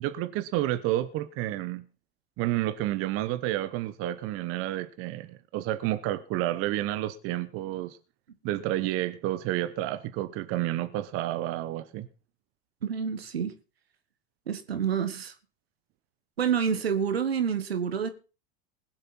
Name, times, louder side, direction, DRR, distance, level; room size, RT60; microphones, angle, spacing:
voice 1, 0.0-1.9 2.4-8.0 8.4-12.1, right 15 dB, 50° right, 1.0 m, -30 dB
voice 2, 12.8-13.5 14.5-15.3 16.4-18.1, right 7 dB, 85° right, 1.8 m, -28 dB
20.0 x 7.9 x 4.4 m
hypercardioid pair, 85°, 30 cm